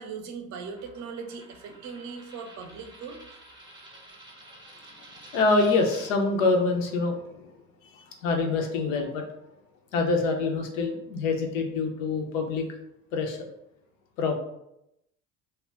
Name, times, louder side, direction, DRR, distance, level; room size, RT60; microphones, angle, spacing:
voice 1, 0.0-3.2, right 5 dB, 45° right, 5 dB, 0.5 m, -39 dB
Coin (dropping), 0.6-6.1, right 1 dB, 10° right, 0.7 m, -50 dB
voice 2, 5.3-7.5 7.9-9.3 9.9-12.6 13.1-13.5 14.2-14.4, left 3 dB, 75° left, 3 dB, 0.6 m, -26 dB
2.2 x 2.1 x 3.4 m, 0.82 s
hypercardioid pair, 55°, 39 cm